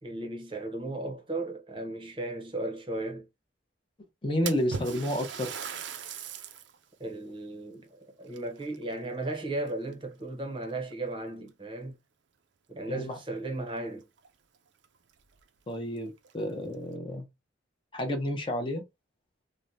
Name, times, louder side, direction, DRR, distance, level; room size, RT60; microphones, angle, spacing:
voice 1, 0.0-3.3 7.0-12.0 12.7-14.0, right 2 dB, 25° right, 0.7 m, -36 dB
voice 2, 4.2-5.5 12.9-13.2 15.7-17.3 17.9-18.8, left 1 dB, 25° left, 0.6 m, -30 dB
Splash splatter, 4.5-6.8 7.2-7.3 8.3-9.3 9.7-10.1 10.9-11.0 11.5-11.6 13.8-13.9 14.2-14.3 14.8-14.9 15.3-15.4 16.2-16.7, right 6 dB, 65° right, 0.5 m, -39 dB
3.2 x 2.1 x 2.6 m
head